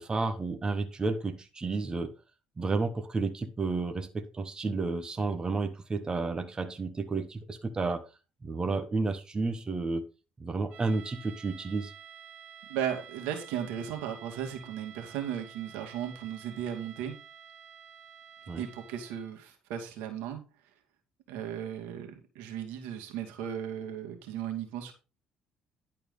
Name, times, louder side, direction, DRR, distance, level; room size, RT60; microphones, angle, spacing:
voice 1, 0.0-2.1 2.6-8.0 8.4-10.1 10.4-11.9 18.5-18.7, right 3 dB, 25° right, 1.4 m, -31 dB
sound 1, 10.7-19.4, right 8 dB, 70° right, 1.7 m, -51 dB
voice 2, 12.7-17.1 18.6-20.4 21.3-24.9, right 9 dB, 85° right, 2.3 m, -36 dB
11.0 x 4.5 x 5.4 m
supercardioid pair, 85°, 3 cm